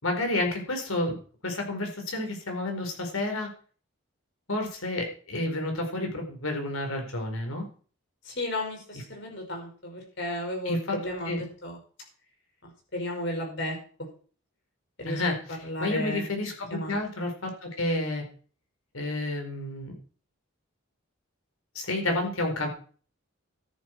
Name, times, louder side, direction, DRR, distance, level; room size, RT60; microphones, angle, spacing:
voice 1, 0.0-1.2 1.4-3.5 4.5-7.6 10.7-10.8 11.3-11.4 15.1-15.4 15.8-18.2 18.9-19.9 21.7-22.7, left 2 dB, 85° left, 4 dB, 4.5 m, -30 dB
voice 2, 8.2-11.8 12.6-13.8 15.0-15.2 15.5-16.3 16.7-17.0, left 1 dB, 55° left, 1 dB, 5.6 m, -34 dB
14.0 x 10.5 x 4.6 m, 0.42 s
head